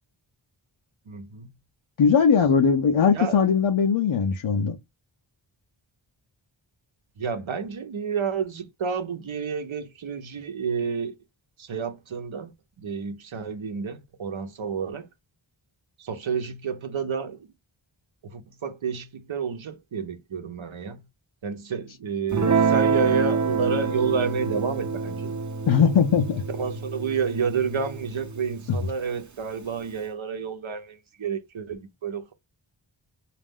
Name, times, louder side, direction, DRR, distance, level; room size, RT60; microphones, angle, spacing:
voice 1, 1.1-1.5 3.1-3.5 7.2-11.2 11.6-15.1 16.0-17.5 18.2-21.0 21.4-25.4 26.5-32.3, right 6 dB, 90° right, 0.9 m, -30 dB
voice 2, 2.0-4.8 25.7-26.4 28.7-28.8, left 6 dB, 90° left, 0.6 m, -20 dB
Guitar, 22.3-28.9, right 5 dB, 40° right, 0.7 m, -27 dB
4.0 x 2.5 x 3.6 m
wide cardioid pair, 40°, 46 cm